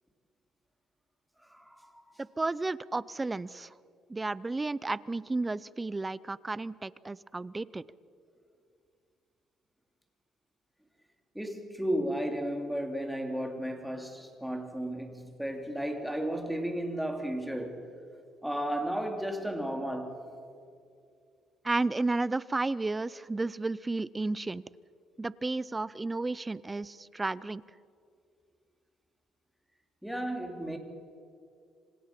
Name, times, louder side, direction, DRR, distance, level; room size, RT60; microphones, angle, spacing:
voice 1, 1.4-2.0 11.3-17.9 18.4-20.3 30.0-30.8, right 1 dB, ahead, 3.0 m, -34 dB
voice 2, 2.2-3.7 4.1-7.8 21.6-24.6 25.2-27.6, right 3 dB, 15° right, 0.5 m, -32 dB
26.5 x 26.0 x 6.0 m
cardioid pair, 110°, 0 cm